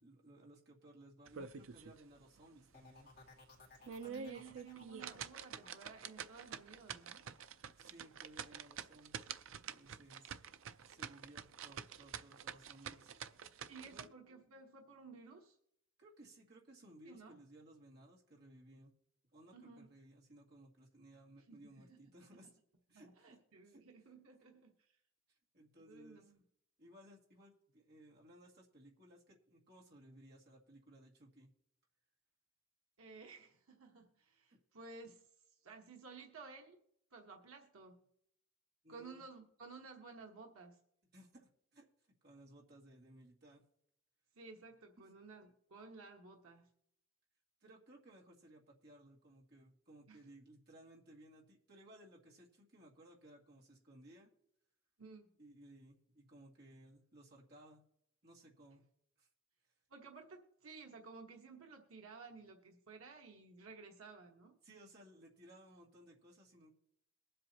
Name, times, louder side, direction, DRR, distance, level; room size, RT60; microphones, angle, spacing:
voice 1, 0.0-3.1 7.7-9.3 9.7-10.3 10.9-13.1 13.8-14.1 16.0-18.9 19.3-22.5 22.9-23.4 23.6-23.8 25.3-26.3 26.8-31.5 38.8-39.2 41.1-41.9 42.2-43.6 47.6-54.3 55.4-57.8 58.2-58.8 59.2-59.3 64.6-66.7, right 1 dB, 50° right, -3 dB, 2.1 m, -60 dB
sound 1, 1.3-2.0 2.4-2.5 3.0-3.1 3.7-14.1, right 7 dB, 70° right, 0.5 m, -47 dB
sound 2, 2.7-8.4 8.7-9.2, left 3 dB, 45° left, 2.3 m, -62 dB
voice 2, 4.0-7.2 13.7-15.6 17.0-17.3 19.5-19.9 21.5-22.0 22.9-25.0 25.9-26.4 33.0-36.8 37.1-38.1 38.9-40.8 44.3-46.7 50.1-50.2 55.0-55.3 59.9-64.6, right 4 dB, 85° right, 2 dB, 1.2 m, -55 dB
22.5 x 7.8 x 2.8 m, 0.73 s
head